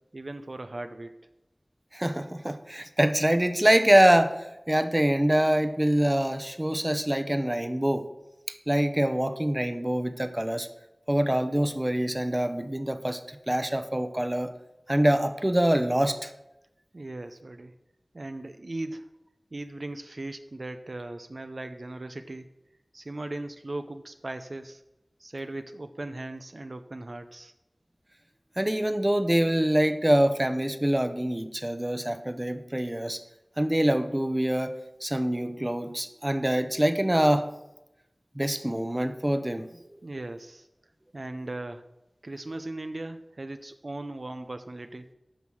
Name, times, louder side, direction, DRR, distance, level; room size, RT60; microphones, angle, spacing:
voice 1, 0.1-1.1 16.9-17.7 18.1-19.1 19.5-22.5 22.9-24.8 25.2-27.5 40.0-40.7 41.1-41.8 42.2-45.1, right 2 dB, 60° right, 8 dB, 0.6 m, -38 dB
voice 2, 1.9-8.0 8.7-10.7 11.1-14.5 14.9-16.3 28.6-33.2 33.6-37.5 38.4-39.7, right 1 dB, 20° right, 9 dB, 0.8 m, -25 dB
9.2 x 6.0 x 6.3 m, 0.91 s
wide cardioid pair, 45°, 0 cm